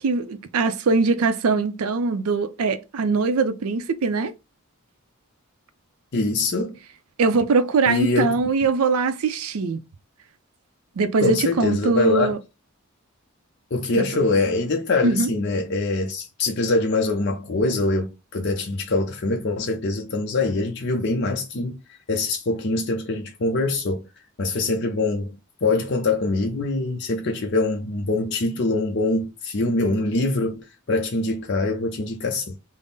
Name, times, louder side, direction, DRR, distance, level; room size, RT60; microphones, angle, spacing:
voice 1, 0.0-4.3 7.2-9.8 11.0-12.4 13.9-14.0 15.0-15.3, right 4 dB, 80° right, 0.4 m, -22 dB
voice 2, 6.1-6.8 7.9-8.3 11.2-12.3 13.7-21.8 22.1-24.0 24.4-25.4 25.6-32.6, left 2 dB, 50° left, 0.5 m, -24 dB
3.6 x 2.0 x 3.9 m
head